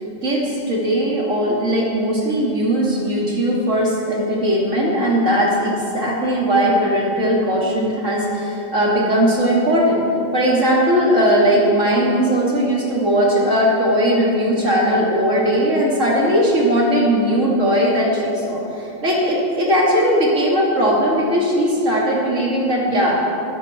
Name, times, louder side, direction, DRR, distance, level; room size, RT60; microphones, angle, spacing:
voice 1, 0.2-10.0 10.3-23.1, equal, 75° right, -4 dB, 3.0 m, -18 dB
23.5 x 13.5 x 4.5 m, 2.9 s
omnidirectional pair, 1.3 m